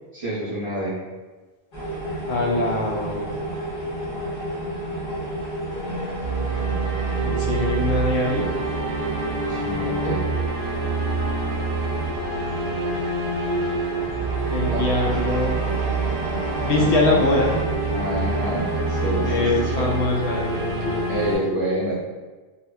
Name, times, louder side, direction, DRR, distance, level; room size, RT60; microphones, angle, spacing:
voice 1, 0.1-1.0 9.5-10.2 14.7-15.3 16.8-17.3 17.9-20.0 21.1-21.9, right 1 dB, 35° right, -9 dB, 0.6 m, -28 dB
sound 1, 1.7-21.4, right 1 dB, 55° left, 0.9 m, -31 dB
voice 2, 2.3-3.3 7.2-8.5 14.5-15.6 16.6-17.5 19.2-21.3, left 2 dB, 85° left, -2 dB, 0.9 m, -23 dB
sound 2, 6.2-21.3, right 3 dB, 65° right, 0.9 m, -27 dB
2.8 x 2.4 x 2.2 m, 1.3 s
omnidirectional pair, 1.1 m